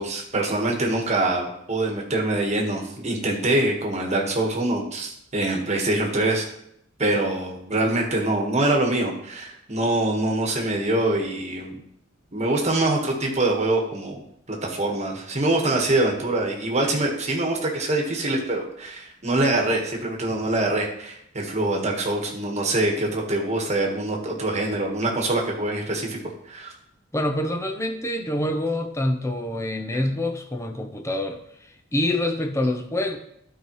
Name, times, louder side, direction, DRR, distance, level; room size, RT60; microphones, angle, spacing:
voice 1, 0.0-6.5 7.0-11.8 12.3-14.2 14.5-26.2 26.4-26.7, right 2 dB, 35° right, 0 dB, 1.4 m, -24 dB
voice 2, 27.1-33.2, left 1 dB, 15° left, 4 dB, 0.7 m, -26 dB
12.0 x 4.8 x 3.1 m, 0.73 s
head